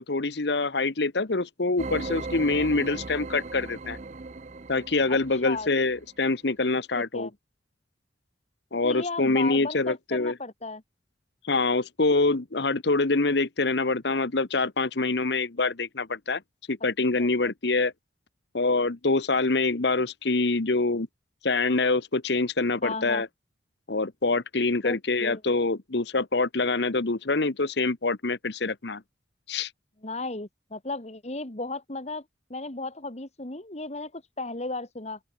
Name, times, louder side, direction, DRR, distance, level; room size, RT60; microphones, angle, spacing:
voice 1, 0.0-4.0 4.7-7.3 8.7-10.3 11.5-16.4 16.7-17.9 18.5-21.1 21.4-23.3 23.9-29.0 29.5-29.7, left 3 dB, 60° left, 1.1 m, -25 dB
sound 1, 1.8-6.1, right 3 dB, 40° right, 0.7 m, -38 dB
voice 2, 5.1-5.7 7.0-7.3 8.8-10.8 17.2-17.3 22.8-23.2 24.8-25.4 30.0-32.2 32.5-35.2, left 2 dB, 35° left, 1.9 m, -35 dB
open air
head